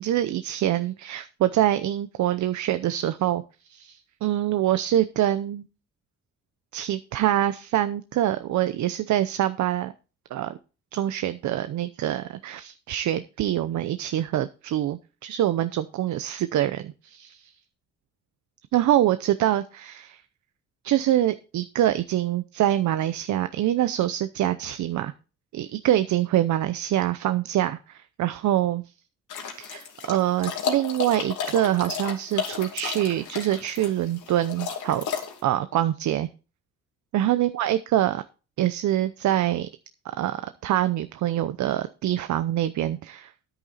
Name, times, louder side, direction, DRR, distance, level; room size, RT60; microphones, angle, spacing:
voice 1, 0.0-3.4 3.7-5.7 6.7-9.9 10.3-10.6 10.9-17.5 18.7-20.2 20.8-25.1 25.5-28.8 29.6-35.0 35.4-36.3 37.1-38.2 38.6-39.7 40.2-43.3, right 12 dB, 70° right, 11 dB, 0.7 m, -25 dB
sound 1, 29.3-35.4, left 7 dB, 80° left, 2.5 m, -33 dB
10.0 x 8.9 x 4.2 m, 0.33 s
cardioid pair, 90°, 30 cm